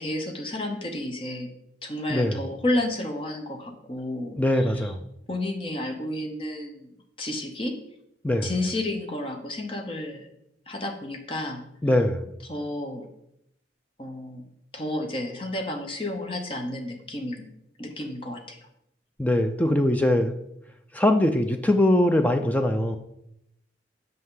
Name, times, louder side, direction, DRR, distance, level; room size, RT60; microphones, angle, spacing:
voice 1, 0.0-1.5 1.8-4.9 5.3-6.9 7.2-7.7 8.4-10.3 10.7-11.6 12.5-13.0 14.0-14.4 14.7-17.4 17.8-18.6, left 1 dB, 30° left, 4 dB, 0.8 m, -31 dB
voice 2, 2.1-2.4 4.4-5.0 8.2-8.5 11.8-12.3 19.2-20.3 20.9-23.0, left 1 dB, 10° left, 6 dB, 0.4 m, -22 dB
8.3 x 5.4 x 3.8 m, 0.79 s
head